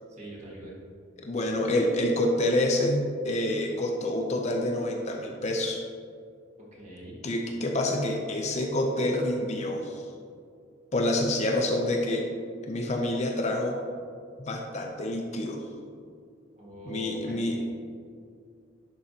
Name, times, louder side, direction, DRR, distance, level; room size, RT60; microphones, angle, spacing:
voice 1, 0.1-0.8 6.7-7.2 16.6-17.7, right 1 dB, 35° right, -5 dB, 1.8 m, -43 dB
voice 2, 1.2-5.8 7.2-10.0 10.9-12.3 12.6-13.8 14.4-15.6 16.9-17.7, left 1 dB, 35° left, 2 dB, 0.5 m, -27 dB
11.0 x 5.0 x 2.9 m, 2.3 s
head